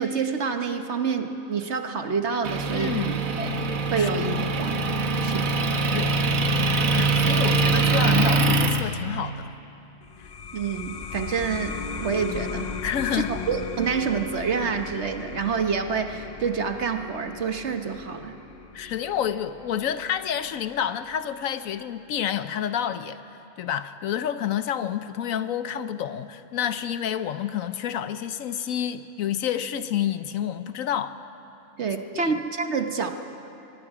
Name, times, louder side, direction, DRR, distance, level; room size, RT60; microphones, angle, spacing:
voice 1, 0.0-3.6 3.9-4.8 5.2-5.6 10.5-12.7 13.1-18.4 31.8-33.1, right 5 dB, 50° right, 6 dB, 1.2 m, -27 dB
Motor vehicle (road) / Engine, 2.4-8.8, right 3 dB, 65° right, 1.5 m, -23 dB
voice 2, 2.7-3.2 3.9-4.1 5.9-6.1 6.9-9.5 10.2-10.3 12.8-13.3 18.7-23.2 23.6-31.2 32.1-32.3, left 9 dB, 70° left, 12 dB, 1.0 m, -29 dB
sound 1, 10.0-21.2, left 5 dB, 50° left, 0.5 m, -37 dB
24.0 x 22.5 x 4.9 m, 3.0 s
omnidirectional pair, 1.5 m